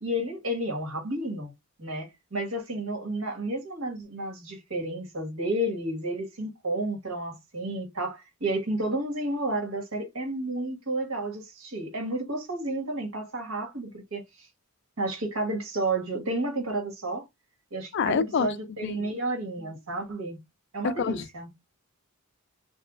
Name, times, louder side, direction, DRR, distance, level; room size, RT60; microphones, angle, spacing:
voice 1, 0.0-1.5 1.8-14.5 15.0-17.3 17.7-20.4 20.7-21.5, right 1 dB, 65° right, 1.5 m, -31 dB
voice 2, 17.9-18.5 18.8-19.1 20.8-21.3, left 6 dB, 55° left, 0.4 m, -27 dB
4.4 x 2.4 x 2.4 m
head